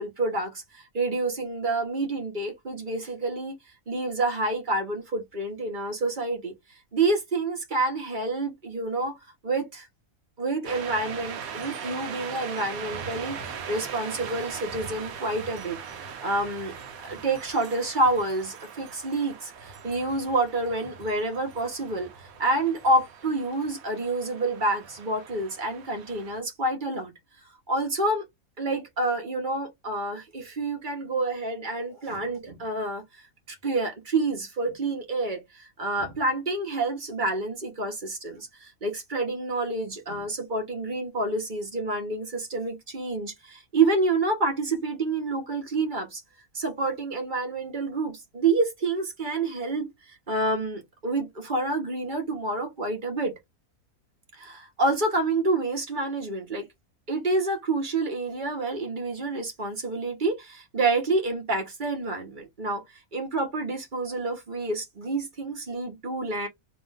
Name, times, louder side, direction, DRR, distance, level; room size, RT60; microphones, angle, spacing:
voice 1, 0.0-3.6 3.9-6.5 6.9-9.2 9.4-9.9 10.4-16.7 17.0-27.1 27.7-28.2 28.6-33.0 33.5-46.2 46.5-53.3 54.4-56.7 57.1-62.8 63.1-66.5, right 2 dB, 30° right, 1.6 m, -28 dB
sound 1, 10.6-26.4, right 6 dB, 65° right, 1.3 m, -40 dB
3.5 x 3.2 x 3.6 m
omnidirectional pair, 1.6 m